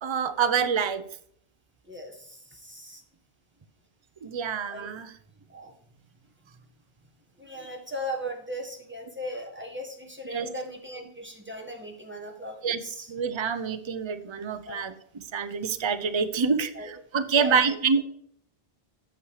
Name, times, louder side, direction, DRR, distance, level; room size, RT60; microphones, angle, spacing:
voice 1, 0.0-1.0 4.2-5.1 10.3-10.5 12.6-12.8 13.1-14.9 15.3-18.0, right 6 dB, 30° right, 10 dB, 0.6 m, -26 dB
voice 2, 1.9-3.0 4.6-4.9 5.5-5.7 7.4-13.1 14.7-14.9 16.7-16.9 17.3-17.8, equal, 10° right, 1 dB, 1.8 m, -38 dB
8.8 x 6.4 x 4.9 m, 0.65 s
omnidirectional pair, 1.0 m